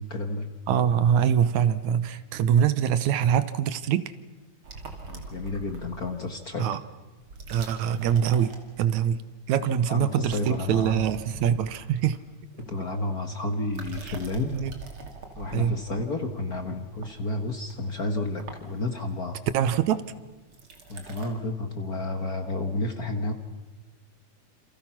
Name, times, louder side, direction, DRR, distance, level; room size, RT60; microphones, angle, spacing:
voice 1, 0.0-0.5 5.1-6.7 9.9-11.0 12.6-14.7 15.3-19.4 20.9-23.3, left 2 dB, 40° left, 5 dB, 1.5 m, -31 dB
voice 2, 0.7-4.1 6.6-6.8 7.5-9.2 9.5-12.2 14.5-14.7 15.5-15.8 19.5-20.0, right 9 dB, 75° right, 14 dB, 2.3 m, -24 dB
sound 1, 4.6-6.5 7.2-9.2 9.4-9.8 10.1-13.1 13.6-21.3, right 3 dB, 45° right, 3.3 m, -44 dB
28.5 x 28.0 x 5.9 m, 1.2 s
omnidirectional pair, 3.4 m